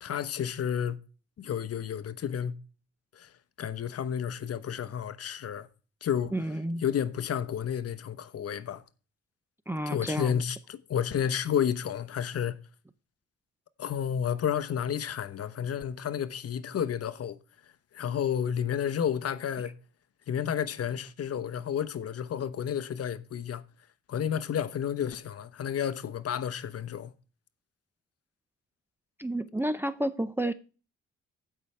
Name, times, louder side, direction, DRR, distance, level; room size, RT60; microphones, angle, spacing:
voice 1, 0.0-1.0 1.4-2.5 3.1-3.3 3.6-5.7 6.0-6.3 6.8-8.8 9.9-12.6 13.8-17.4 17.9-19.7 20.3-23.6 24.1-27.1, left 8 dB, 50° left, 1.0 m, -31 dB
voice 2, 6.3-6.8 9.7-10.4 29.2-30.5, right 1 dB, 5° right, 0.6 m, -30 dB
15.5 x 5.7 x 3.3 m
cardioid pair, 90°, 30 cm